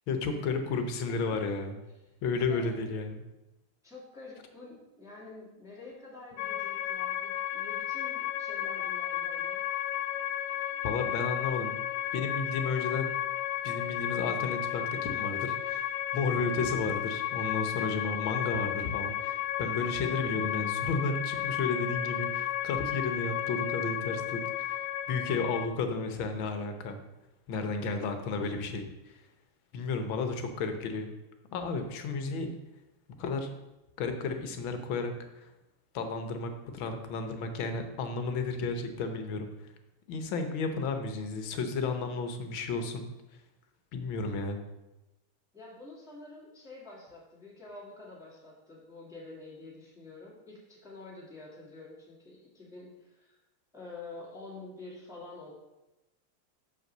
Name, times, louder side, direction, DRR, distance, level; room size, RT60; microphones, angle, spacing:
voice 1, 0.1-1.8 2.2-3.2 10.8-11.8 12.1-13.1 13.6-24.8 25.1-27.0 27.5-29.1 29.7-31.1 31.5-32.5 33.2-33.5 34.0-35.5 35.9-39.5 40.1-43.1 43.9-44.6, left 4 dB, 70° left, 7 dB, 1.5 m, -33 dB
voice 2, 1.1-1.4 2.4-3.1 3.8-9.6 45.5-53.4 53.7-55.5, left 3 dB, ahead, -5 dB, 1.8 m, -48 dB
sound 1, 6.4-25.7, left 12 dB, 90° left, 1.5 m, -33 dB
6.0 x 5.4 x 6.5 m, 0.99 s
omnidirectional pair, 2.4 m